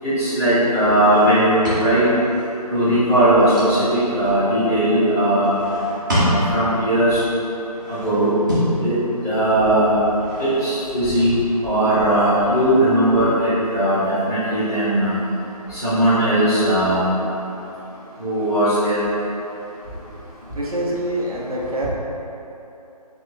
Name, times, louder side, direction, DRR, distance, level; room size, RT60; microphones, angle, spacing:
voice 1, 0.0-2.1 2.7-5.5 6.2-7.2 7.9-8.3 8.8-8.9 9.2-10.0 10.4-11.3 11.6-15.1 15.7-17.1 18.2-19.0, right 1 dB, 5° left, -20 dB, 0.8 m, -18 dB
sound 1, 0.9-2.3 3.0-4.4 5.4-6.8 7.6-8.8 10.0-11.0, equal, 30° right, 0.9 m, -27 dB
voice 2, 20.5-21.9, right 1 dB, 60° right, -4 dB, 0.7 m, -25 dB
3.2 x 3.0 x 4.0 m, 2.9 s
figure-of-eight pair, 170°, 21 cm